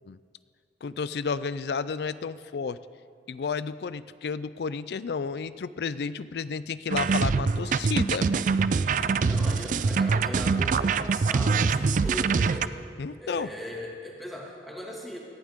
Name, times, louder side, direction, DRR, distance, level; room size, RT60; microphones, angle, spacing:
voice 1, 0.8-2.8 3.3-8.4 13.0-13.5, left 5 dB, 65° left, 15 dB, 0.4 m, -32 dB
sound 1, 6.9-12.7, right 4 dB, 45° right, 0.3 m, -24 dB
voice 2, 9.2-12.8 13.2-15.2, equal, ahead, -3 dB, 2.2 m, -39 dB
18.5 x 15.0 x 3.7 m, 2.1 s
head